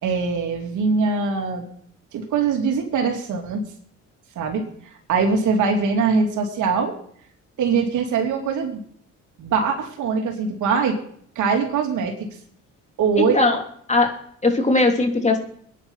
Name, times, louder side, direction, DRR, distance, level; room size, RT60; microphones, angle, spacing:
voice 1, 0.0-1.6 2.1-3.6 4.3-4.7 5.1-6.9 7.6-8.8 9.4-11.0 11.3-12.3 13.0-13.4, right 5 dB, 80° right, 3 dB, 3.1 m, -22 dB
voice 2, 13.2-13.6 13.9-14.2 14.4-15.4, left 2 dB, 25° left, 3 dB, 3.1 m, -19 dB
22.5 x 10.0 x 5.7 m, 0.64 s
cardioid pair, 90°, 30 cm